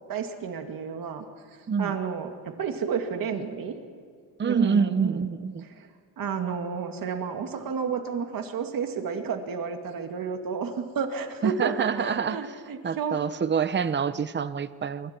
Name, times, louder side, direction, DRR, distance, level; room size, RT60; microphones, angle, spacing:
voice 1, 0.1-1.3 1.8-3.8 4.4-5.2 5.8-5.9 6.2-13.2, right 6 dB, 60° right, 5 dB, 2.4 m, -31 dB
voice 2, 4.4-5.6 11.4-12.5 12.8-15.1, right 6 dB, 30° right, 13 dB, 0.8 m, -26 dB
26.0 x 24.0 x 4.6 m, 2.1 s
cardioid pair, 130°, 38 cm